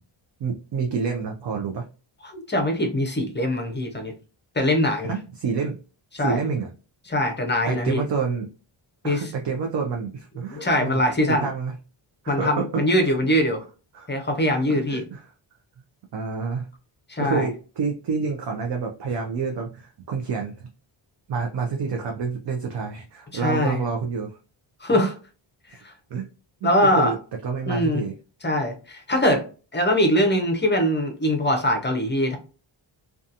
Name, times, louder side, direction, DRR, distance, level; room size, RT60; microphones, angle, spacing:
voice 1, 0.4-1.9 5.0-5.8 6.2-6.7 7.7-8.5 9.0-11.0 11.3-11.7 12.2-13.1 13.9-14.1 14.9-15.3 16.1-16.7 17.2-20.7 21.3-24.4 25.0-25.1 25.7-25.8 26.1-26.3 26.6-27.2 27.4-28.1, right 5 dB, 55° right, 2 dB, 0.5 m, -28 dB
voice 2, 2.2-4.1 4.6-5.1 6.1-6.4 7.1-8.0 9.0-9.3 10.5-11.5 12.3-13.6 14.1-15.0 17.1-17.5 23.3-23.8 24.8-25.1 25.8-25.9 26.6-27.1 27.7-28.0 28.4-29.5 29.7-32.4, left 1 dB, 20° left, 4 dB, 0.5 m, -22 dB
2.7 x 2.3 x 2.4 m, 0.35 s
wide cardioid pair, 170°, 50 cm